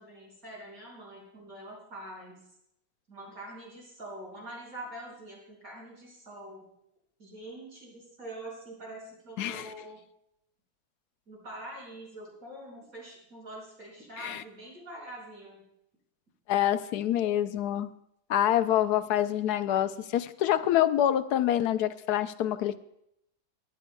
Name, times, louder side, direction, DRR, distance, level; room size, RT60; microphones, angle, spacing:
voice 1, 0.0-2.4 3.1-6.7 7.2-10.0 11.3-15.6, right 1 dB, 65° right, -4 dB, 6.1 m, -45 dB
voice 2, 9.4-9.7 14.2-14.4 16.5-17.9 18.3-22.8, left 11 dB, 90° left, 12 dB, 1.2 m, -26 dB
24.0 x 11.0 x 2.3 m, 0.78 s
omnidirectional pair, 1.6 m